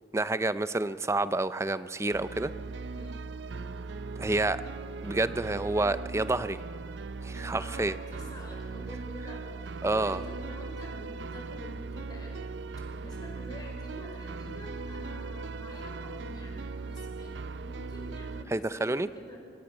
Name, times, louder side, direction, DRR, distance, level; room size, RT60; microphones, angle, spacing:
voice 1, 0.1-2.5 4.2-4.6 5.0-6.6 7.2-8.0 9.8-10.2 18.5-19.1, right 2 dB, 15° right, 14 dB, 0.5 m, -29 dB
sound 1, 2.1-18.4, right 4 dB, 90° right, 0.5 m, -39 dB
voice 2, 2.9-3.3 7.5-12.5 12.9-19.4, equal, 25° left, 0 dB, 4.9 m, -47 dB
25.0 x 19.0 x 6.2 m, 2.3 s
head